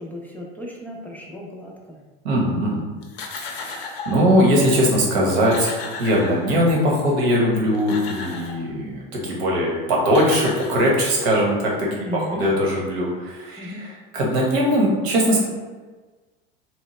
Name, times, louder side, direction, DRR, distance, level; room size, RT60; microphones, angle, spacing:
voice 1, 0.0-2.0 11.9-12.5 13.6-13.8, left 1 dB, 5° left, -3 dB, 0.3 m, -34 dB
voice 2, 2.2-2.8 3.4-5.7 6.0-15.4, equal, 80° right, -3 dB, 1.0 m, -20 dB
sound 1, 3.0-4.3 5.0-5.1 5.3-6.9 7.5-8.7 9.7-9.8 10.0-11.3, left 4 dB, 85° left, 0.5 m, -35 dB
2.9 x 2.0 x 3.0 m, 1.3 s
supercardioid pair, 100°, 31 cm